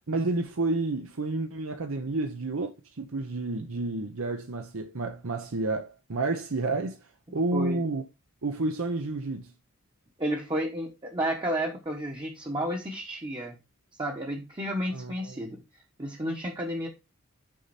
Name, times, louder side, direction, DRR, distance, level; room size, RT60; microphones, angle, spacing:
voice 1, 0.1-7.0 7.3-8.0 8.4-9.5 14.9-15.4, right 2 dB, 65° right, 0.8 m, -30 dB
voice 2, 7.3-7.8 10.2-13.6 14.0-16.9, right 1 dB, 20° right, 1.1 m, -32 dB
6.4 x 5.6 x 4.2 m
head